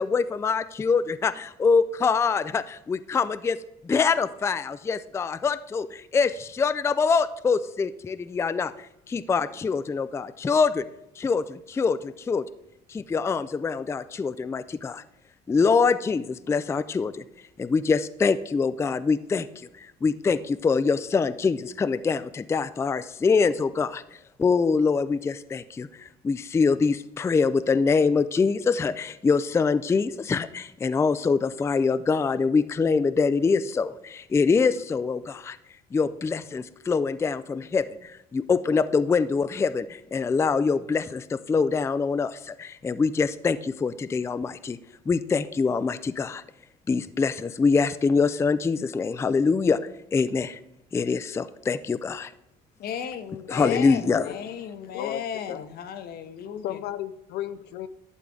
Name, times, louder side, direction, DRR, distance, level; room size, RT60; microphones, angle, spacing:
voice 1, 0.0-3.6 3.8-10.8 11.2-12.5 12.9-15.0 15.5-17.2 17.6-24.0 24.4-35.6 35.9-44.8 45.1-46.4 46.9-49.8 50.1-50.6 50.9-52.3 53.5-54.2, left 5 dB, 15° left, 14 dB, 0.3 m, -24 dB
voice 2, 52.8-56.8, left 8 dB, 65° left, 10 dB, 0.9 m, -35 dB
voice 3, 53.6-54.4 54.8-55.7 56.6-57.9, left 12 dB, 80° left, 11 dB, 0.4 m, -34 dB
11.5 x 7.4 x 3.8 m, 0.84 s
cardioid pair, 110°, 17 cm